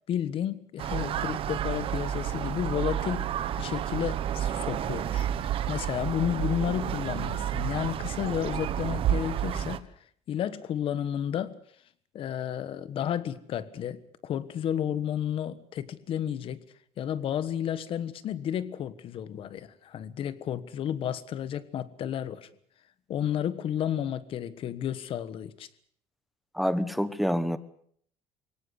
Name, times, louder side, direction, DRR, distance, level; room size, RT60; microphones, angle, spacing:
voice 1, 0.1-3.3 3.6-5.3 5.7-9.9 10.3-11.6 12.1-16.6 17.0-22.5 23.1-25.7, left 10 dB, 50° left, 16 dB, 1.4 m, -32 dB
sound 1, 0.8-9.8, right 10 dB, 50° right, 1.2 m, -30 dB
voice 2, 26.5-27.6, equal, ahead, 14 dB, 1.1 m, -27 dB
22.5 x 18.0 x 8.3 m, 0.62 s
cardioid pair, 155°, 12 cm